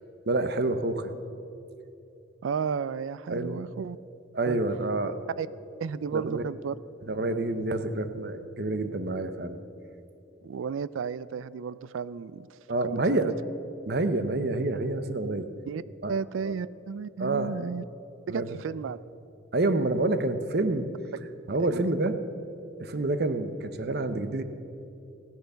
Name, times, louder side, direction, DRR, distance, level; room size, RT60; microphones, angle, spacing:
voice 1, 0.3-1.1 3.3-3.6 4.3-5.2 6.1-6.4 7.1-9.6 12.7-13.3 13.9-15.5 16.0-16.1 16.4-16.5 17.2-17.6 18.3-18.5 19.5-20.9 21.5-22.2 22.8-24.4, right 2 dB, 55° right, 10 dB, 0.8 m, -28 dB
voice 2, 2.4-4.0 4.5-4.6 5.4-5.5 5.8-6.8 10.4-12.5 12.8-13.3 15.7-15.8 16.1-17.8 18.3-19.0 21.6-21.9, right 6 dB, 85° right, 18 dB, 0.4 m, -33 dB
16.0 x 10.5 x 6.9 m, 2.8 s
head